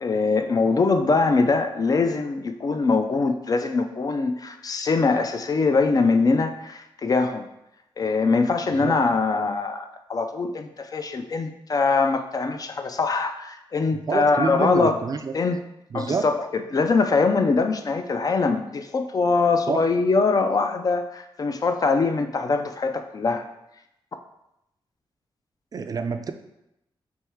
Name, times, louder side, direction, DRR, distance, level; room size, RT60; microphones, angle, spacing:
voice 1, 0.0-7.5 8.0-15.0 15.3-15.6 15.9-16.4 16.7-23.4, left 4 dB, 40° left, 7 dB, 0.4 m, -22 dB
voice 2, 13.9-15.3 15.9-16.3 19.7-19.8 25.7-26.3, right 5 dB, 40° right, 7 dB, 0.3 m, -27 dB
3.5 x 3.1 x 4.5 m, 0.85 s
wide cardioid pair, 115°, 9 cm